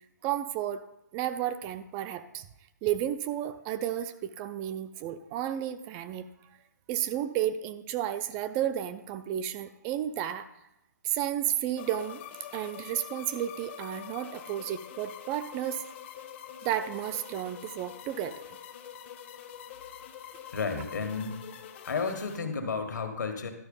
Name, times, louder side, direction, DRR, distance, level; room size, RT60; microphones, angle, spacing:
voice 1, 0.2-0.8 1.1-2.4 2.8-6.2 6.9-10.5 11.0-12.2 12.5-15.8 16.6-18.4, right 11 dB, 20° right, 11 dB, 0.4 m, -32 dB
sound 1, 11.8-22.4, left 10 dB, 40° left, 0.8 m, -45 dB
voice 2, 20.5-21.4 21.9-23.5, left 5 dB, 75° left, 5 dB, 1.6 m, -32 dB
12.0 x 4.7 x 5.4 m, 0.86 s
hypercardioid pair, 145°, 10 cm